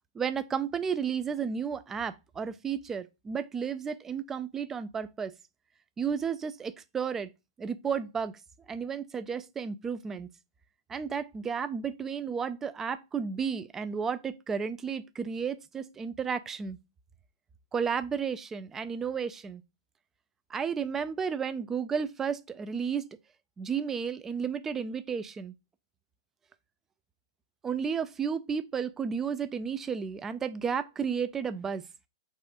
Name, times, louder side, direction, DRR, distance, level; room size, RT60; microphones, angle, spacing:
voice 1, 0.1-5.3 6.0-7.3 7.6-8.3 8.7-10.3 10.9-16.8 17.7-19.6 20.5-23.1 23.6-25.5 27.6-31.8, right 6 dB, 15° right, 0.4 m, -32 dB
4.0 x 2.4 x 4.7 m
hypercardioid pair, 125°, 3 cm